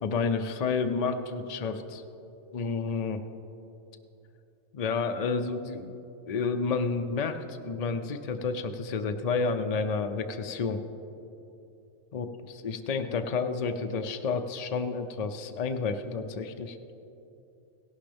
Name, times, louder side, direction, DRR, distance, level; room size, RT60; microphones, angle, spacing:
voice 1, 0.0-2.0 2.5-3.2 4.7-5.9 6.3-10.8 12.1-12.3 12.6-16.8, left 4 dB, 90° left, 7 dB, 0.3 m, -30 dB
16.5 x 11.5 x 3.5 m, 2.9 s
omnidirectional pair, 1.4 m